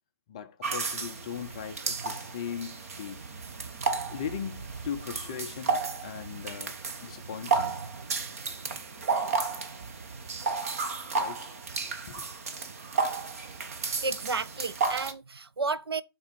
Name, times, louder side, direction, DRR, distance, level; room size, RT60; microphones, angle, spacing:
voice 1, 0.3-3.2 4.1-7.7 8.6-8.7 11.2-11.5 12.1-12.2, left 8 dB, 15° left, 0.4 m, -39 dB
sound 1, 0.6-15.1, right 4 dB, 35° right, 0.8 m, -33 dB
voice 2, 14.0-16.0, right 4 dB, 70° right, 0.5 m, -32 dB
6.3 x 3.6 x 5.2 m
figure-of-eight pair, 155°, 13 cm